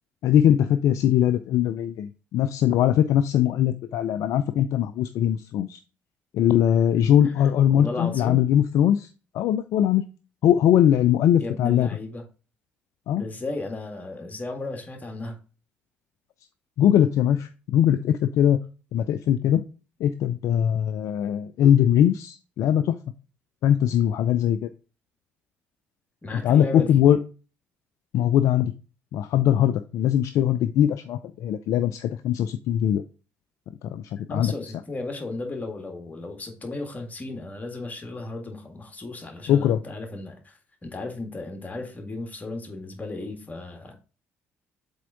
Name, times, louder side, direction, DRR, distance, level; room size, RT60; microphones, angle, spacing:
voice 1, 0.2-5.8 6.3-9.1 9.3-10.1 10.4-11.9 13.1-13.2 16.8-18.6 18.9-19.6 20.0-22.9 23.6-24.7 26.3-27.2 28.1-28.7 29.1-33.0 33.8-34.5 39.5-39.8, left 10 dB, 50° left, 0.4 m, -21 dB
voice 2, 7.7-8.4 11.4-12.3 13.1-15.4 26.2-27.0 34.3-43.9, left 2 dB, 25° left, 1.8 m, -35 dB
7.5 x 3.5 x 4.0 m
figure-of-eight pair, 45°, 7 cm